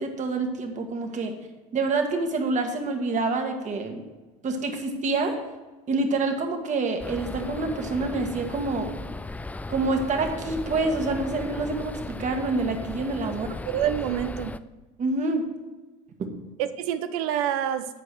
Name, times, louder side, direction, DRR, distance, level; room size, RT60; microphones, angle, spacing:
voice 1, 0.0-1.4 1.7-4.0 4.4-5.4 5.9-8.9 9.7-13.5 15.0-15.5 16.2-16.3, right 3 dB, 40° right, 5 dB, 1.6 m, -27 dB
sound 1, 7.0-14.6, left 2 dB, 10° left, 0.4 m, -36 dB
voice 2, 13.6-14.6 16.6-17.9, right 10 dB, 80° right, 10 dB, 0.6 m, -27 dB
11.0 x 4.6 x 6.3 m, 1.2 s
supercardioid pair, 85°, 19 cm